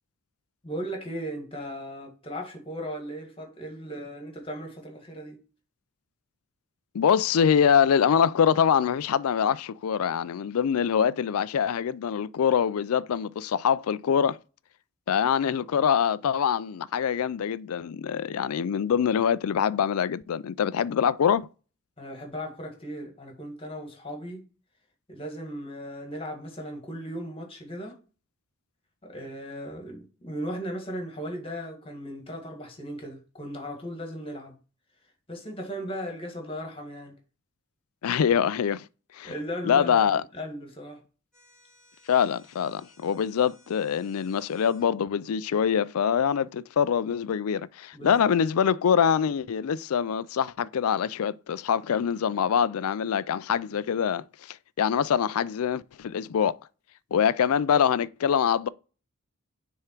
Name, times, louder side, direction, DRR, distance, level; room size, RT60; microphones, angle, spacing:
voice 1, 0.6-5.4 22.0-24.5 25.1-28.0 29.0-34.5 35.3-37.1 39.2-41.0 47.9-48.1, equal, 25° left, 1.7 m, -37 dB
voice 2, 6.9-14.4 15.1-21.5 38.0-38.9 39.1-39.3 39.6-40.2 42.1-56.6 57.1-58.7, left 7 dB, 75° left, 0.4 m, -24 dB
sound 1, 41.3-44.9, left 1 dB, ahead, 2.4 m, -60 dB
6.5 x 3.6 x 4.5 m
head